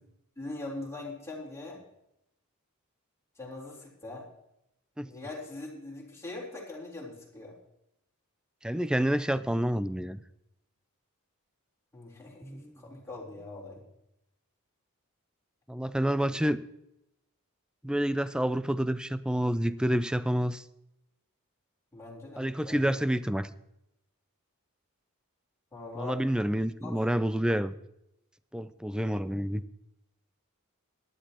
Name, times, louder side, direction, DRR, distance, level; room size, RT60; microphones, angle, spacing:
voice 1, 0.4-1.8 3.4-4.3 5.0-7.5 11.9-13.8 21.9-23.0 25.7-26.2 26.8-26.9, left 2 dB, 15° left, -4 dB, 3.7 m, -42 dB
voice 2, 8.6-10.2 12.4-12.7 15.7-16.6 17.8-20.6 22.4-23.5 26.0-27.7 28.5-29.6, equal, 5° right, 14 dB, 0.4 m, -28 dB
18.0 x 11.5 x 2.9 m, 0.85 s
head